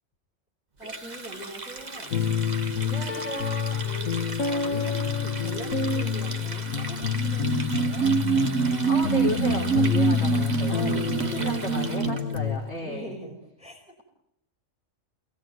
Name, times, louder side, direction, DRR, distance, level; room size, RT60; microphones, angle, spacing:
voice 1, 0.8-2.1 3.8-8.1 10.7-11.7 12.8-14.0, right 1 dB, 5° right, 1 dB, 5.0 m, -42 dB
Water tap faucet, 0.8-12.4, right 3 dB, 35° right, 1.6 m, -38 dB
sound 1, 2.1-12.6, left 7 dB, 90° left, 1.7 m, -28 dB
voice 2, 2.8-3.8 8.9-13.1, left 1 dB, 55° left, -1 dB, 5.0 m, -34 dB
sound 2, 7.0-12.3, right 6 dB, 80° right, 1.7 m, -25 dB
28.5 x 20.0 x 9.3 m, 0.78 s
omnidirectional pair, 1.3 m